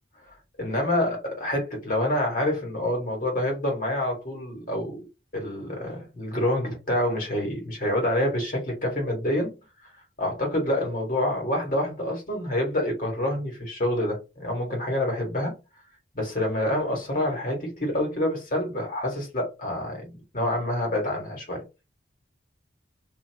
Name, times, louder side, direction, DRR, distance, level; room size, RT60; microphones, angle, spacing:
voice 1, 0.3-5.0 5.3-9.6 10.2-15.6 16.1-21.6, left 1 dB, 45° left, 1.6 m, -27 dB
2.8 x 2.7 x 2.8 m
head